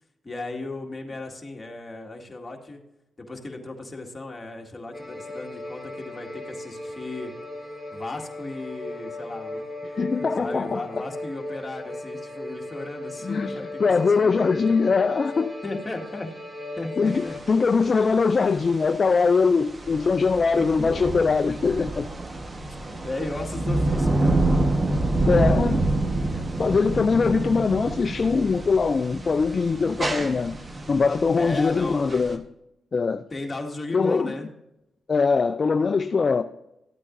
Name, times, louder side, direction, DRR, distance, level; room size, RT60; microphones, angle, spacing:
voice 1, 0.2-2.8 3.2-7.3 7.9-14.8 15.6-16.3 16.8-17.4 20.6-21.1 22.9-25.0 26.7-27.3 31.4-32.0 33.3-34.5, left 2 dB, 30° left, 2.0 m, -36 dB
sound 1, 4.9-17.4, left 1 dB, 10° right, 4.2 m, -36 dB
voice 2, 10.0-11.0 13.2-15.5 17.0-22.1 25.3-25.8 26.3-30.5 30.9-32.4 32.9-33.2 33.9-34.3 35.1-36.4, left 4 dB, 50° left, 0.4 m, -22 dB
sound 2, 17.1-32.4, right 2 dB, 35° right, 1.2 m, -27 dB
13.5 x 8.4 x 2.6 m
supercardioid pair, 50°, 0 cm